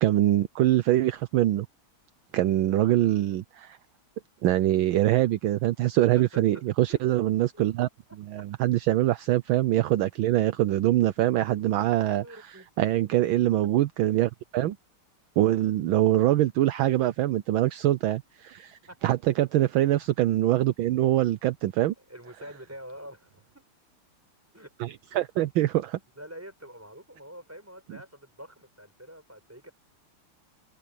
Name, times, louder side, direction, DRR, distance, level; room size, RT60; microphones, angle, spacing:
voice 1, 0.0-1.7 2.3-3.8 4.4-7.9 8.3-12.2 12.8-14.8 15.4-21.9 24.8-26.0, right 14 dB, 75° right, 1.4 m, -24 dB
voice 2, 5.8-6.6 6.9-7.0 7.5-7.6 12.0-13.0 13.6-13.7 18.9-19.0 22.0-23.7 24.5-24.7 26.2-29.7, equal, 5° right, 5.3 m, -46 dB
omnidirectional pair, 2.4 m